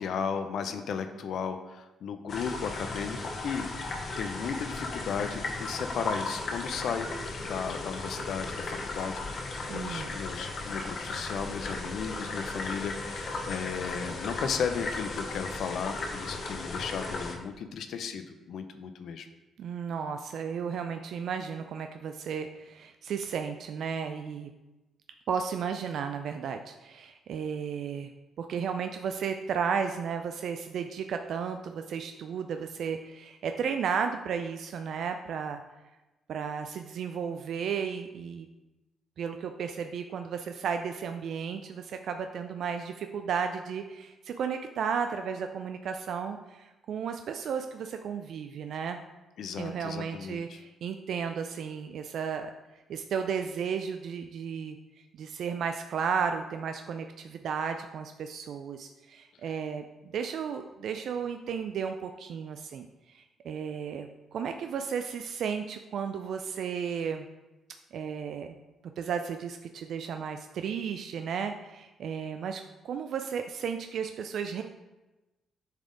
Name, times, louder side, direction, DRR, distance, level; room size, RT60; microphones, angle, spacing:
voice 1, 0.0-3.2 3.4-3.7 4.2-7.1 7.4-19.3 49.4-50.6, left 6 dB, 70° left, 9 dB, 0.5 m, -35 dB
sound 1, 2.3-17.3, left 3 dB, 55° left, 0.8 m, -36 dB
voice 2, 9.7-10.1 19.6-24.5 25.3-28.1 28.4-35.6 36.3-38.5 39.2-49.0 49.6-52.5 52.9-54.8 55.2-67.3 67.9-68.6 69.0-74.6, right 6 dB, 70° right, 6 dB, 0.3 m, -34 dB
7.4 x 3.5 x 3.8 m, 1.1 s
cardioid pair, 90°, 0 cm